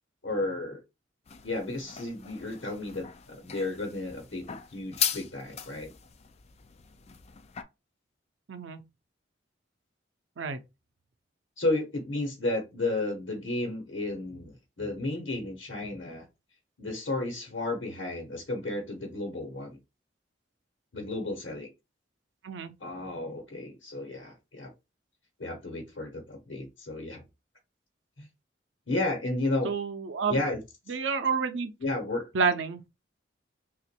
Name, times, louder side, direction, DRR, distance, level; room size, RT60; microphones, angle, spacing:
voice 1, 0.2-0.8 1.4-5.9 11.6-16.2 16.8-19.8 20.9-21.7 22.8-24.7 25.4-27.2 28.2-28.3 28.9-29.7 30.3-30.6 31.8-32.3, left 2 dB, 90° left, 1.1 m, -33 dB
sound 1, 1.3-7.6, left 9 dB, 35° left, 0.4 m, -38 dB
voice 2, 8.5-8.8 10.4-10.6 22.4-22.7 29.6-30.4 30.9-31.7 32.3-32.9, right 5 dB, 90° right, 0.6 m, -29 dB
2.9 x 2.5 x 4.3 m
head